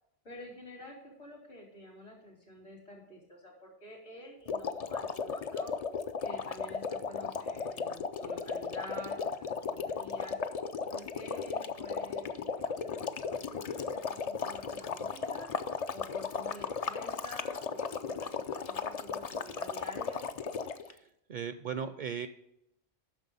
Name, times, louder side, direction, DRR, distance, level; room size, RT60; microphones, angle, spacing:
voice 1, 0.2-5.7 6.2-10.4 10.9-15.5 15.9-20.2, left 1 dB, 75° left, 0 dB, 3.7 m, -49 dB
sound 1, 4.5-20.9, left 5 dB, 45° left, 0.5 m, -36 dB
voice 2, 20.9-22.3, right 7 dB, 55° right, 11 dB, 0.6 m, -38 dB
9.7 x 6.3 x 5.4 m, 0.81 s
omnidirectional pair, 1.1 m